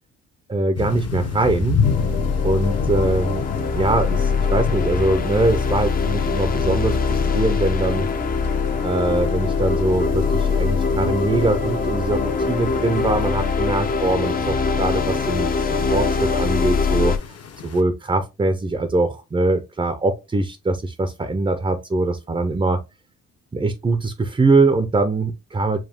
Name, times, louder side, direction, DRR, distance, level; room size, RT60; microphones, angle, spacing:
voice 1, 0.5-1.8 2.4-3.4 3.8-8.1 8.8-17.4 17.6-22.8 23.5-25.8, right 2 dB, 15° right, 0.6 m, -22 dB
sound 1, 0.7-17.8, left 6 dB, 55° left, 1.0 m, -31 dB
sound 2, 1.8-17.2, left 5 dB, 30° left, 0.6 m, -22 dB
5.0 x 2.3 x 3.6 m
cardioid pair, 90°, 30 cm